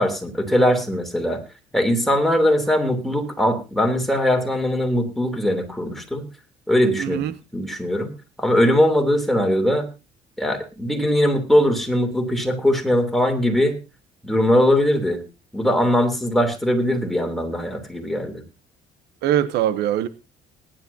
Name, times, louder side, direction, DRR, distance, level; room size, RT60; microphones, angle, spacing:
voice 1, 0.0-1.4 1.7-6.2 6.7-8.1 8.4-9.9 10.4-13.8 14.2-15.2 15.5-18.4, left 1 dB, ahead, 3.1 m, -20 dB
voice 2, 7.0-7.3 19.2-20.1, right 11 dB, 80° right, 0.9 m, -22 dB
20.0 x 10.5 x 2.8 m
cardioid pair, 110°, 17 cm